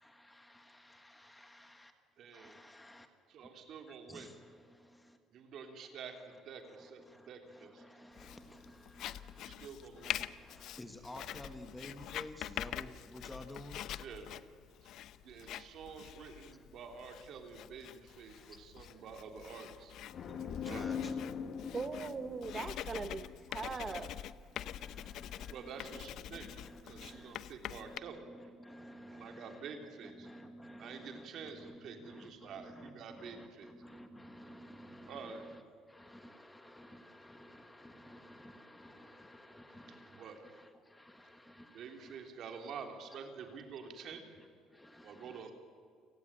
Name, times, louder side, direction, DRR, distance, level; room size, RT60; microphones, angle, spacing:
voice 1, 0.0-1.9 2.3-3.1 4.1-5.2 6.1-9.7 9.9-13.9 16.5-17.0 18.1-19.5 19.8-19.9 20.2-21.4 23.7-23.9 24.5-26.0 26.3-35.6 35.9-42.6 43.5-43.6 44.1-45.5, equal, 5° left, 7 dB, 1.5 m, -54 dB
voice 2, 2.2-2.6 3.3-4.3 5.3-7.0 7.3-7.8 9.4-10.2 14.0-14.3 15.2-20.0 20.6-20.8 25.5-26.5 26.8-28.2 29.1-30.3 30.8-33.7 35.1-35.4 40.1-40.4 41.7-44.3 45.0-45.5, right 6 dB, 45° right, 5 dB, 3.4 m, -48 dB
Writing, 8.2-28.0, left 12 dB, 55° left, 0.7 m, -45 dB
sound 1, 20.1-23.8, left 7 dB, 40° left, 1.3 m, -41 dB
voice 3, 21.7-24.1, right 5 dB, 20° right, 10 dB, 0.9 m, -40 dB
29.0 x 18.5 x 9.0 m, 2.2 s
cardioid pair, 175°, 0 cm